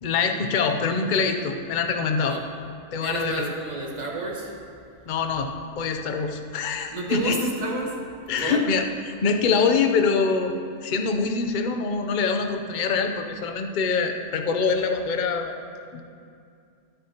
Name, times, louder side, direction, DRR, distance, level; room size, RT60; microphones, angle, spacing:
voice 1, 0.0-2.4 2.9-3.5 5.1-5.5 5.8-7.4 8.3-10.6 10.8-15.6 15.9-16.0, left 5 dB, 45° left, 5 dB, 0.6 m, -24 dB
voice 2, 3.0-4.5 6.9-8.0 8.4-8.6, right 1 dB, 30° right, -1 dB, 1.4 m, -30 dB
16.5 x 8.9 x 2.9 m, 2.4 s
omnidirectional pair, 1.5 m